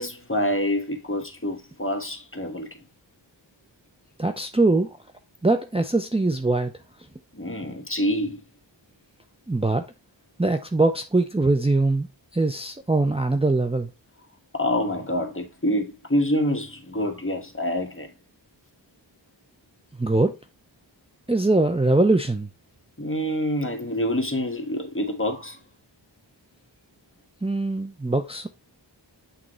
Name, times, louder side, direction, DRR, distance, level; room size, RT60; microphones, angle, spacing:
voice 1, 0.0-2.7 7.3-8.4 14.5-18.1 23.0-25.6, equal, 30° left, 1.7 m, -26 dB
voice 2, 4.2-5.0 5.4-6.7 9.5-9.8 10.4-13.9 20.0-20.4 21.3-22.5 27.4-28.5, right 2 dB, 15° right, 0.7 m, -22 dB
8.7 x 3.8 x 3.1 m
wide cardioid pair, 50°, 45 cm